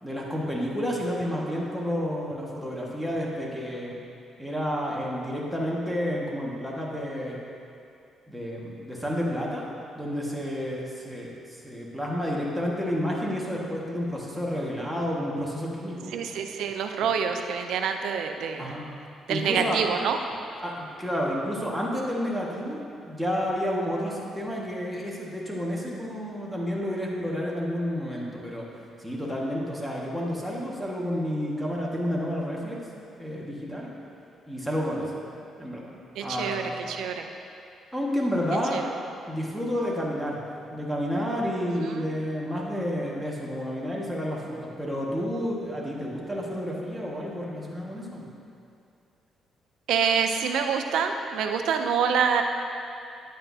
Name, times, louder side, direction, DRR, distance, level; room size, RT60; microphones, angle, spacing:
voice 1, 0.0-3.9 4.4-7.4 8.3-9.7 9.9-16.1 18.6-18.8 19.3-19.8 20.6-22.8 23.1-28.6 29.0-32.8 33.2-33.9 34.5-35.1 35.6-35.8 36.2-36.7 37.9-38.8 39.3-40.4 40.7-48.3, equal, ahead, -5 dB, 1.7 m, -30 dB
voice 2, 16.1-18.7 19.3-20.2 36.2-36.6 36.9-37.3 38.7-38.9 41.8-42.0 49.9-52.4, right 7 dB, 85° right, 5 dB, 0.6 m, -26 dB
10.0 x 8.9 x 2.8 m, 2.5 s
cardioid pair, 90°, 0 cm